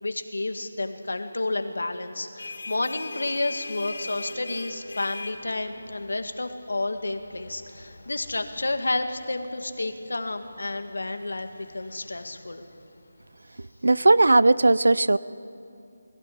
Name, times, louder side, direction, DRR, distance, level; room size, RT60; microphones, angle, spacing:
voice 1, 0.0-12.6, left 2 dB, 80° left, 7 dB, 2.0 m, -30 dB
sound 1, 2.1-13.4, left 3 dB, 65° left, 3.5 m, -43 dB
voice 2, 13.8-15.2, right 2 dB, 80° right, 18 dB, 0.6 m, -17 dB
21.5 x 16.5 x 8.8 m, 2.6 s
figure-of-eight pair, 170°, 0 cm